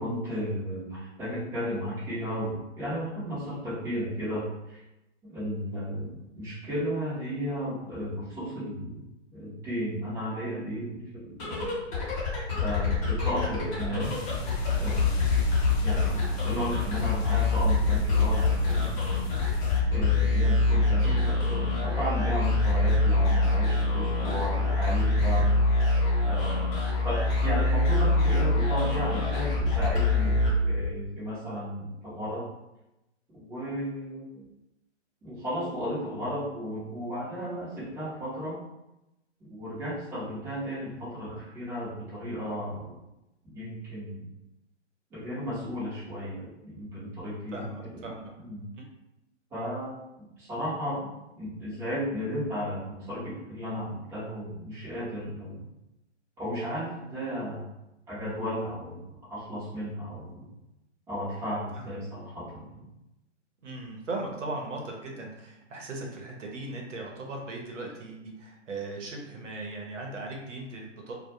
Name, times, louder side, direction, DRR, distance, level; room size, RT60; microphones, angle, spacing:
voice 1, 0.0-4.8 5.2-9.1 9.3-11.7 12.5-14.1 14.7-15.3 15.8-19.0 19.8-26.0 26.3-26.7 27.0-30.3 30.6-32.4 33.4-34.5 35.2-38.6 39.5-43.0 43.4-44.3 45.1-47.6 47.9-48.0 48.5-48.7 49.5-51.1 51.4-55.7 56.4-57.6 58.1-60.5 61.1-62.9, equal, 5° right, -11 dB, 0.6 m, -34 dB
sound 1, 11.3-31.0, left 2 dB, 25° left, 0.8 m, -25 dB
sound 2, 14.0-19.8, left 2 dB, 60° left, 0.6 m, -39 dB
voice 2, 47.5-48.3 48.7-48.9 61.8-62.0 63.6-71.1, right 2 dB, 85° right, 0 dB, 0.8 m, -38 dB
2.2 x 2.2 x 2.8 m, 0.93 s
hypercardioid pair, 140°, 36 cm